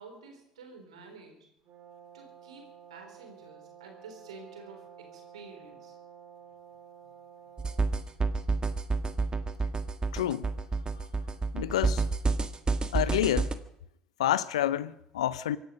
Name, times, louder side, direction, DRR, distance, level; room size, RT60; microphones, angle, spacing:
voice 1, 0.0-1.5 2.1-6.0, right 4 dB, 85° right, 3.6 m, -50 dB
Brass instrument, 1.6-7.9, right 8 dB, 55° right, 3.6 m, -52 dB
sound 1, 7.6-13.5, right 3 dB, 25° right, 1.5 m, -29 dB
voice 2, 10.1-10.5 11.5-12.0 12.9-13.5 14.2-15.6, left 12 dB, 85° left, 0.6 m, -28 dB
24.5 x 11.0 x 5.2 m
hypercardioid pair, 60°, 3 cm